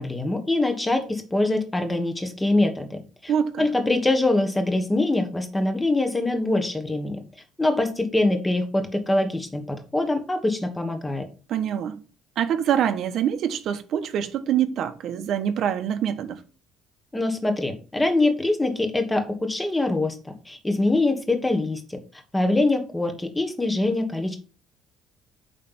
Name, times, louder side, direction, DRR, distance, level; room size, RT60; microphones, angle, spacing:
voice 1, 0.0-3.3 3.6-7.2 7.6-11.3 17.1-20.2 20.5-22.0 22.3-24.4, left 2 dB, 10° left, 1.3 m, -24 dB
voice 2, 3.3-3.7 11.5-12.0 12.4-16.4, right 9 dB, 50° right, 1.1 m, -25 dB
9.0 x 3.3 x 5.6 m
cardioid pair, 160°, 0 cm